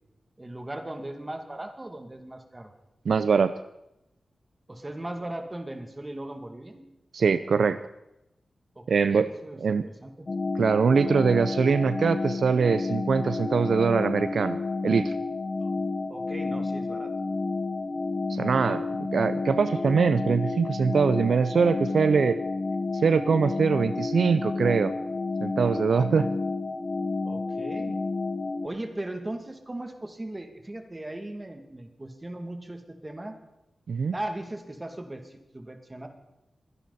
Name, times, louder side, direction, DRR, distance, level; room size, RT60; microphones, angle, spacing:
voice 1, 0.4-2.7 4.7-6.9 8.8-10.3 15.6-15.7 16.1-17.1 27.2-28.0 28.6-33.4 34.1-36.1, right 1 dB, 25° right, 5 dB, 2.4 m, -38 dB
voice 2, 3.1-3.5 7.1-7.8 8.9-9.3 9.6-9.9 10.6-15.1 18.3-18.8 19.1-22.4 22.9-24.9 25.4-26.3 33.9-34.1, right 5 dB, 75° right, 13 dB, 0.4 m, -23 dB
sound 1, 10.3-28.7, left 3 dB, 45° left, 0.9 m, -30 dB
23.5 x 10.5 x 4.1 m, 0.89 s
cardioid pair, 50°, 0 cm